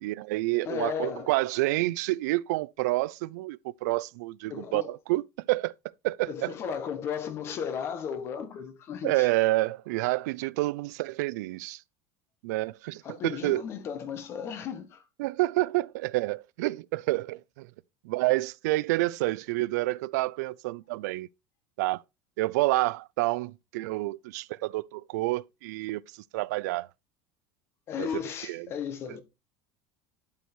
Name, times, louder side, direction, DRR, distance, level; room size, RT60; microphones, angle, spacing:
voice 1, 0.0-5.7 6.0-6.5 9.0-11.8 12.4-13.6 15.2-17.7 18.0-21.3 21.8-22.0 22.4-26.9 28.0-28.1 28.4-28.7, right 20 dB, 90° right, 0.4 m, -28 dB
voice 2, 0.6-1.3 4.5-4.9 6.2-9.3 13.0-15.0 27.9-29.2, left 7 dB, 30° left, 1.3 m, -35 dB
11.5 x 4.7 x 4.3 m
cardioid pair, 180°, 9 cm